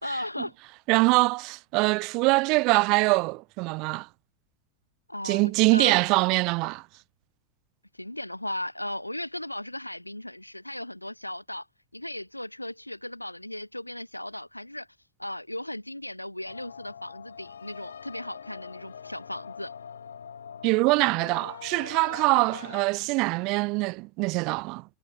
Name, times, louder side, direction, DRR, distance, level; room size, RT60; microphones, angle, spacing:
voice 1, 0.0-0.5 5.1-6.0 7.9-11.7 11.9-14.9 15.2-19.7, left 1 dB, 85° left, 0.5 m, -36 dB
voice 2, 0.9-4.1 5.2-6.8 20.6-24.8, right 26 dB, 40° right, 0.7 m, -23 dB
sound 1, 16.5-22.8, left 7 dB, 70° left, 3.3 m, -43 dB
figure-of-eight pair, 90°, 0 cm